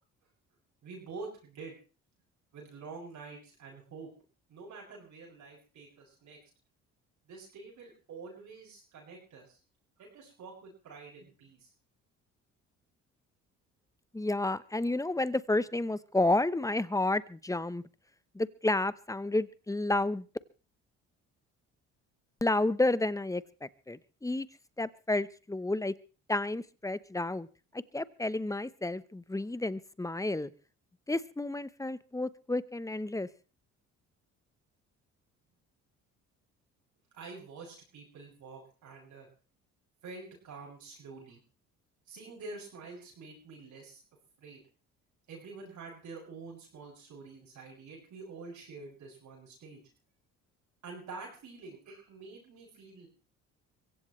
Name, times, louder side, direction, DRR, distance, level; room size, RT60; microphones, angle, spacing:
voice 1, 0.8-1.8 2.5-4.1 4.5-6.4 7.3-9.6 10.0-11.7 37.1-39.3 40.0-41.4 42.1-44.0 44.4-44.6 45.3-49.8 50.8-53.1, right 4 dB, 65° right, -2 dB, 7.2 m, -47 dB
voice 2, 14.1-17.8 18.3-20.3 22.4-24.5 24.8-25.9 26.3-27.5 27.7-30.5 31.1-33.3, left 2 dB, 10° left, 16 dB, 0.9 m, -31 dB
23.5 x 16.0 x 3.2 m, 0.36 s
supercardioid pair, 70°, 32 cm